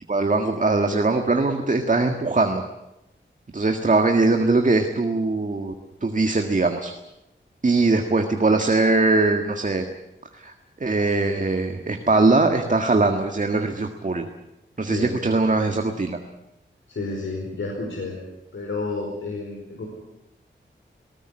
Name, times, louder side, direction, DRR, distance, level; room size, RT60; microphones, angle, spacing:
voice 1, 0.1-2.6 3.5-5.7 6.0-6.9 7.6-9.8 10.3-14.2 14.8-16.2, right 3 dB, 40° right, 5 dB, 1.8 m, -21 dB
voice 2, 14.8-15.1 16.9-18.2 18.5-19.9, left 3 dB, 85° left, -1 dB, 5.0 m, -30 dB
20.5 x 18.5 x 9.8 m, 0.91 s
wide cardioid pair, 100°, 20 cm